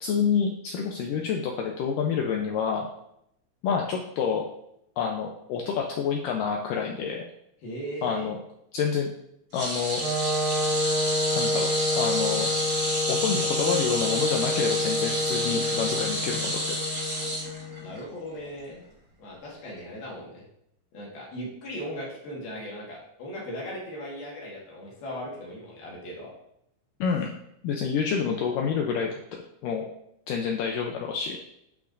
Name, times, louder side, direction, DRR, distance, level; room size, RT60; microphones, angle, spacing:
voice 1, 0.0-2.9 3.6-4.4 5.0-7.2 8.0-8.4 8.7-9.1 9.5-10.0 11.4-12.5 13.1-16.6 27.0-27.3 27.6-29.2 29.6-29.9 30.3-31.4, left 6 dB, 90° left, 0 dB, 1.9 m, -28 dB
voice 2, 7.6-8.4 17.8-18.8 19.2-20.4 20.9-26.3, equal, 70° left, -4 dB, 3.4 m, -38 dB
sound 1, 9.5-18.0 18.4-18.6 19.8-19.9, right 1 dB, 35° right, 1.4 m, -30 dB
Wind instrument woodwind instrument, 10.0-18.0, left 2 dB, 75° right, 4.7 m, -29 dB
10.0 x 5.8 x 2.6 m, 0.76 s
omnidirectional pair, 4.6 m